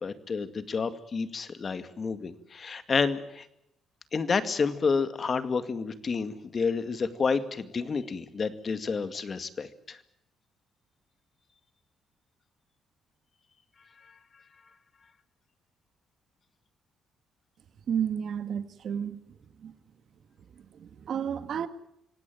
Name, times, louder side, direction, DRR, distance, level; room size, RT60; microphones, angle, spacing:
voice 1, 0.0-3.5 4.1-10.0, left 5 dB, 40° left, 2.1 m, -30 dB
voice 2, 17.9-19.2 19.6-19.7 20.6-21.7, right 8 dB, 60° right, 1.9 m, -32 dB
26.0 x 17.5 x 9.4 m
cardioid pair, 90°, 0 cm